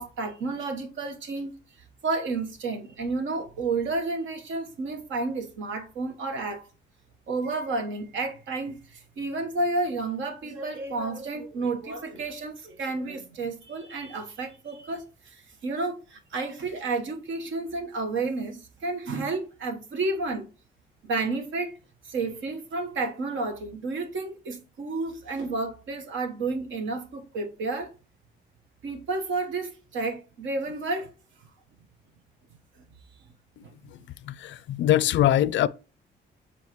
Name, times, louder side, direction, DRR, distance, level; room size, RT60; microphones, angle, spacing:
voice 1, 0.0-1.5 2.0-6.7 7.3-20.5 21.0-21.8 22.0-27.9 28.8-31.1 33.6-33.7, right 3 dB, 75° right, 1.3 m, -31 dB
voice 2, 33.6-34.0 34.2-35.7, left 12 dB, 70° left, 0.4 m, -23 dB
7.2 x 4.3 x 3.1 m
cardioid pair, 90°, 20 cm